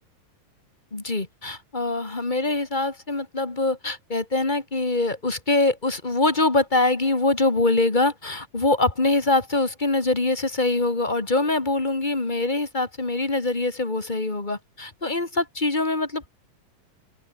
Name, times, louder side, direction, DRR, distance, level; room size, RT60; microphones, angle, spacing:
voice 1, 0.9-16.3, left 2 dB, 15° left, 1.7 m, -24 dB
open air
omnidirectional pair, 4.0 m